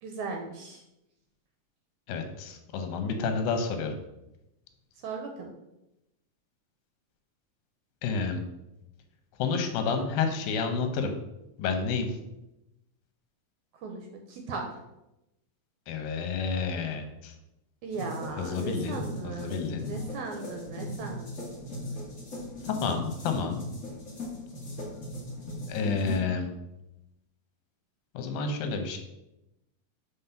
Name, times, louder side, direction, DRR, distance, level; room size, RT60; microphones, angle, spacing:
voice 1, 0.0-0.8 5.0-5.5 13.8-14.0 14.3-14.6 17.8-19.5 19.9-21.5, right 4 dB, 75° right, 3 dB, 1.8 m, -37 dB
voice 2, 2.1-3.9 8.0-8.4 9.4-11.1 11.6-12.1 15.9-17.3 18.4-19.9 22.7-23.6 25.7-26.5 28.1-29.0, left 5 dB, 85° left, 6 dB, 2.7 m, -30 dB
sound 1, 17.9-26.2, left 1 dB, 45° left, 1.0 m, -39 dB
7.3 x 3.7 x 5.7 m, 0.90 s
omnidirectional pair, 4.0 m